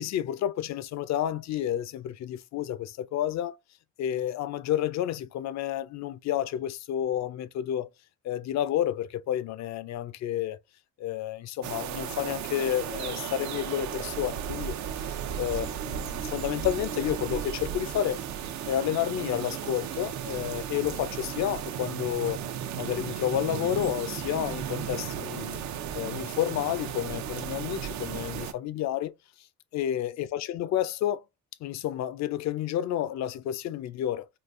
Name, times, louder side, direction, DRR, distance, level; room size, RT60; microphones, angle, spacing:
voice 1, 0.0-3.6 4.0-7.9 8.2-10.6 11.0-22.4 22.7-25.6 25.9-29.1 29.7-31.2 31.6-34.3, left 11 dB, 65° left, 0.5 m, -30 dB
sound 1, 11.6-28.5, right 9 dB, 70° right, 0.6 m, -35 dB
3.7 x 2.3 x 2.4 m
cardioid pair, 90°, 30 cm